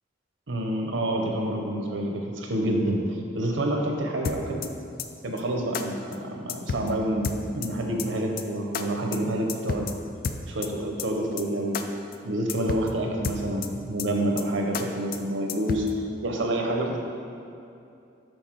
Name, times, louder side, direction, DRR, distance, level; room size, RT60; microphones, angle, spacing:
voice 1, 0.5-3.0 3.3-4.7 5.2-6.0 6.3-9.9 10.5-11.8 12.2-15.9 16.2-17.0, right 1 dB, 85° right, 2 dB, 0.8 m, -28 dB
sound 1, 4.2-4.7 5.0-5.1 5.4-5.5 5.7-5.8 6.1-6.2 6.5-6.9 7.2-7.7 8.0-8.1 8.4-8.5 8.7-8.8 9.1-9.2 9.5-9.9 10.2-10.7 11.0-11.1 11.4-11.5 11.7-11.8 12.1-12.2 12.5-12.9 13.2-13.7 14.0-14.1 14.4-14.5 14.7-14.8 15.1-15.2 15.5-15.9, left 6 dB, 50° left, 0.3 m, -30 dB
6.4 x 3.9 x 4.6 m, 2.6 s
head